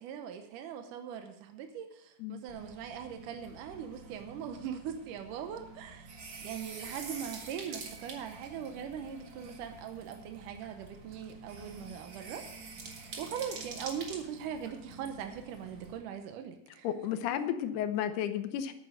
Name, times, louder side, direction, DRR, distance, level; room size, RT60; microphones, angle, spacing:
voice 1, 0.0-12.5 13.2-16.9, right 8 dB, 80° right, 6 dB, 1.9 m, -41 dB
sound 1, 2.5-16.0, right 4 dB, 55° right, 1.3 m, -47 dB
voice 2, 16.8-18.7, left 10 dB, 75° left, 9 dB, 2.7 m, -32 dB
10.5 x 9.1 x 6.4 m, 0.77 s
omnidirectional pair, 4.9 m